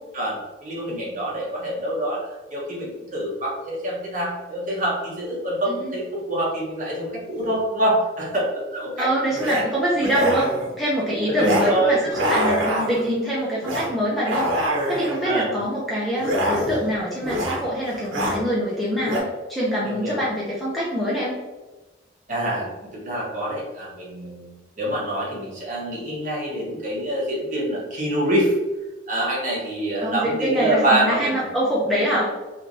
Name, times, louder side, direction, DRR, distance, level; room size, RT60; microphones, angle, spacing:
voice 1, 0.1-2.3 2.5-9.1 11.3-12.6 15.2-15.7 19.8-20.2 22.3-22.7 22.9-24.5 24.8-28.5 29.1-31.4, right 1 dB, 40° right, -5 dB, 1.1 m, -25 dB
voice 2, 5.7-6.0 9.0-10.5 10.8-14.5 14.9-21.4 30.0-32.3, equal, ahead, -8 dB, 0.5 m, -24 dB
sound 1, 7.4-7.5 9.3-9.6 10.0-10.7 11.4-11.7 12.0-13.1 13.6-13.9 14.2-15.2 16.2-16.9 17.2-17.6 17.9-18.4 19.0-19.2, equal, 80° right, 0.8 m, -25 dB
3.2 x 3.1 x 2.6 m, 1.2 s
head